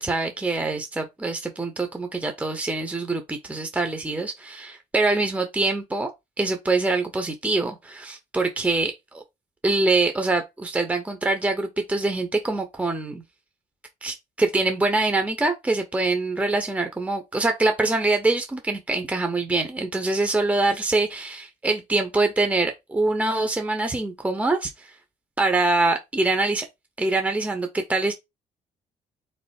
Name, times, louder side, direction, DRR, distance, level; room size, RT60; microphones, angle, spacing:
voice 1, 0.0-6.1 6.4-9.2 9.6-13.2 14.0-24.9 25.4-26.7 27.0-28.1, right 2 dB, 10° right, 0.8 m, -24 dB
3.6 x 3.2 x 4.2 m
cardioid pair, 110°, 15 cm